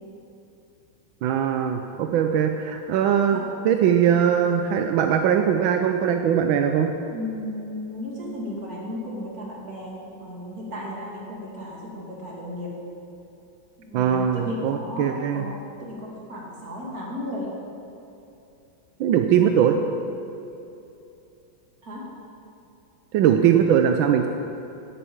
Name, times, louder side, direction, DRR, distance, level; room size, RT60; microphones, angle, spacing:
voice 1, 1.2-6.9 13.9-15.4 19.0-19.8 23.1-24.3, right 8 dB, 85° right, 6 dB, 1.4 m, -21 dB
voice 2, 7.1-12.7 13.8-17.5 21.8-22.0, left 1 dB, 50° right, -3 dB, 3.0 m, -35 dB
11.0 x 8.6 x 8.8 m, 2.8 s
omnidirectional pair, 2.1 m